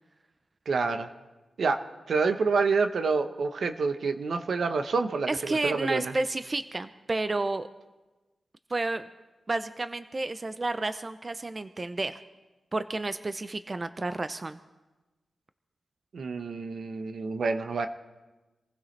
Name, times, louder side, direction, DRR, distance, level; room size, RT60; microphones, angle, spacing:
voice 1, 0.7-1.1 1.6-1.8 2.1-6.1 16.1-17.9, right 4 dB, 75° right, 8 dB, 1.0 m, -27 dB
voice 2, 5.3-7.7 8.7-9.1 9.5-12.2 12.7-14.6, right 2 dB, 40° right, 11 dB, 0.6 m, -31 dB
26.5 x 15.5 x 3.3 m, 1.2 s
cardioid pair, 60°, 0 cm